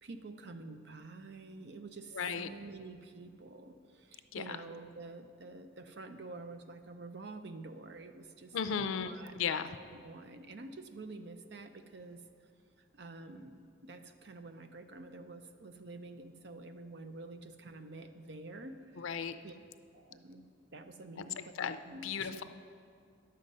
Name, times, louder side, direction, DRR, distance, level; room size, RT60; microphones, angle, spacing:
voice 1, 0.0-9.3 9.7-12.2 12.9-19.6 19.9-20.4 20.7-21.5 21.8-22.4, right 3 dB, 60° right, 8 dB, 0.6 m, -48 dB
voice 2, 2.1-2.5 4.3-4.6 8.5-9.7 19.0-19.4 21.2-21.3 21.6-21.8 22.0-22.4, left 6 dB, 85° left, 10 dB, 0.5 m, -35 dB
11.0 x 7.6 x 5.4 m, 2.3 s
head